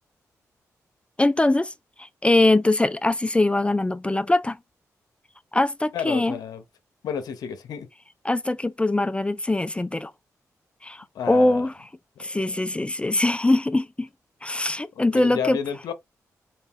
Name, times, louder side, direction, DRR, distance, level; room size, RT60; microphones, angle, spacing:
voice 1, 1.2-1.7 2.0-4.6 5.5-6.3 8.2-10.1 10.8-11.7 12.2-14.1 14.4-15.6, left 2 dB, 15° left, 0.5 m, -22 dB
voice 2, 5.9-6.6 7.0-7.9 11.1-11.7 12.2-12.6 15.1-15.9, left 7 dB, 85° left, 0.9 m, -31 dB
4.4 x 2.5 x 3.6 m
cardioid pair, 55°, 6 cm